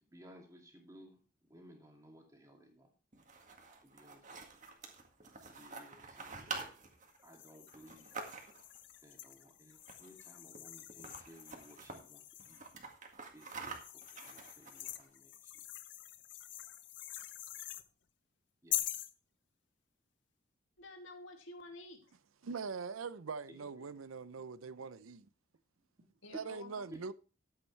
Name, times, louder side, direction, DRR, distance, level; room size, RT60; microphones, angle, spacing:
voice 1, 0.0-2.9 3.8-4.5 5.2-6.8 7.2-8.3 9.0-12.6 13.3-15.6 18.6-19.0 23.5-24.0 26.9-27.1, equal, 15° right, 2.5 m, -59 dB
sound 1, 3.1-8.8 9.8-10.3 10.5-10.6 10.9-12.0 12.4-15.0, right 4 dB, 35° right, 1.9 m, -47 dB
sound 2, 7.2-12.8 13.4-17.9 18.7-19.1, left 13 dB, 60° left, 0.7 m, -45 dB
voice 2, 20.8-22.2 26.2-26.8, left 2 dB, 75° left, 2.5 m, -51 dB
voice 3, 22.4-25.3 26.3-27.1, right 5 dB, 90° right, 0.6 m, -42 dB
13.0 x 8.7 x 3.3 m
head